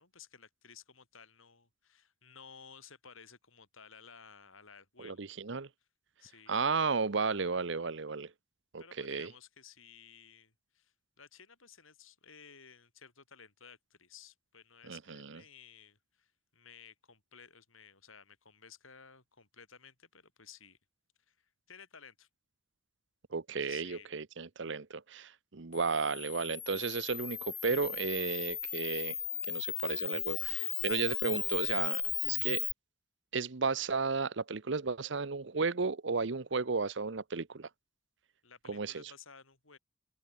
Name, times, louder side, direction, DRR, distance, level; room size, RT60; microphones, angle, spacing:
voice 1, 0.0-5.3 6.2-6.6 8.8-20.8 21.3-22.3 23.6-24.1 38.4-39.8, left 6 dB, 80° left, 8.0 m, -56 dB
voice 2, 5.0-5.7 6.5-8.3 8.7-9.3 14.8-15.4 23.3-29.2 29.5-32.6 33.3-37.7 38.7-39.1, right 4 dB, 60° right, 0.8 m, -34 dB
Camera, 25.7-32.7, left 9 dB, 15° left, 0.4 m, -36 dB
head